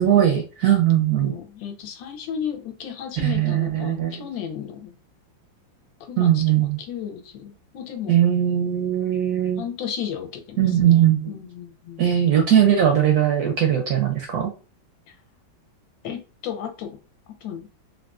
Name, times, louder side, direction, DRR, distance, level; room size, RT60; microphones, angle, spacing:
voice 1, 0.0-1.3 3.2-4.2 6.2-6.8 8.1-9.6 10.6-11.4 12.0-14.5, right 10 dB, 75° right, 3 dB, 0.9 m, -19 dB
voice 2, 1.2-4.9 6.0-6.4 6.8-8.2 9.6-12.0 16.0-17.0 17.4-17.7, left 8 dB, 80° left, 6 dB, 1.3 m, -34 dB
3.6 x 2.4 x 2.3 m, 0.33 s
omnidirectional pair, 2.1 m